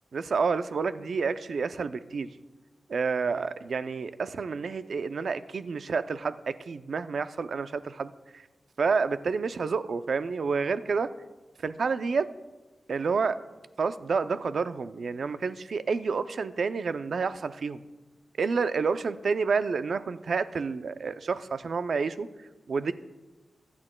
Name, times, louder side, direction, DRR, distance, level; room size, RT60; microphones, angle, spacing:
voice 1, 0.1-2.3 2.9-8.4 8.8-11.1 11.6-12.3 12.9-13.4 13.8-17.8 18.4-22.3 22.7-22.9, right 5 dB, 65° right, 12 dB, 0.4 m, -29 dB
24.5 x 8.7 x 2.2 m, 1.2 s
wide cardioid pair, 115°, 0 cm